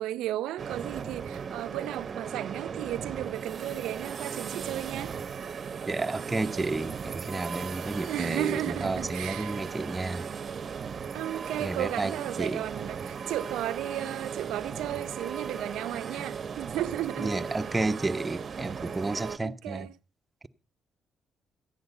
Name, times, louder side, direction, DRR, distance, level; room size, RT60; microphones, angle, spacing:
voice 1, 0.0-5.2 8.1-9.6 11.1-17.5 19.4-19.9, right 13 dB, 90° right, 0.6 m, -34 dB
sound 1, 0.6-19.4, right 6 dB, 45° right, 0.9 m, -37 dB
voice 2, 5.9-10.3 11.6-12.1 12.4-12.6 16.1-16.2 17.2-19.9, right 2 dB, 20° right, 0.9 m, -31 dB
14.5 x 10.5 x 5.5 m
cardioid pair, 90°, 0 cm